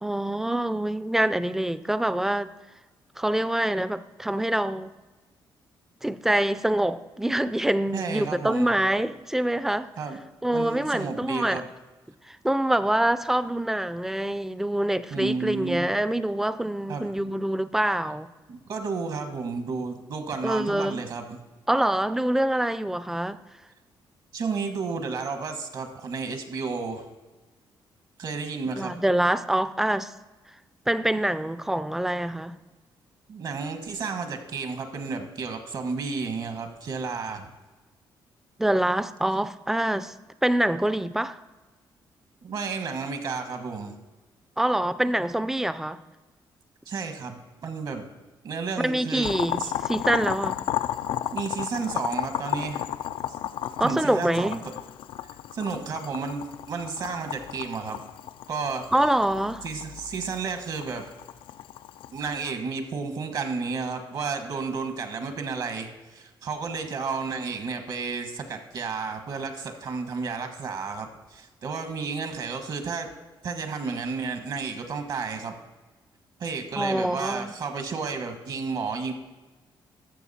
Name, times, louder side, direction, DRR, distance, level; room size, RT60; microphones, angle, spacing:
voice 1, 0.0-2.5 3.2-4.9 6.0-9.9 10.4-11.6 12.3-18.3 20.4-21.0 21.7-23.4 28.8-30.1 30.9-32.6 38.6-40.1 40.4-41.4 44.6-46.0 48.8-50.6 53.8-54.6 58.9-59.6 76.8-77.5, right 1 dB, 5° right, 0.4 m, -25 dB
voice 2, 7.9-8.8 10.0-10.2 10.5-11.6 15.1-15.9 16.9-17.1 18.5-21.4 24.3-27.1 28.2-28.9 33.3-37.5 42.4-43.9 46.9-48.0 48.4-49.3 49.6-49.7 51.3-52.8 53.8-54.7 55.5-58.0 58.5-58.9 59.6-61.0 62.1-73.1 73.4-75.5 76.4-79.1, right 4 dB, 60° right, 1.4 m, -32 dB
Boiling, 49.2-62.5, left 11 dB, 90° left, 0.4 m, -34 dB
13.0 x 6.8 x 4.2 m
cardioid pair, 115°, 8 cm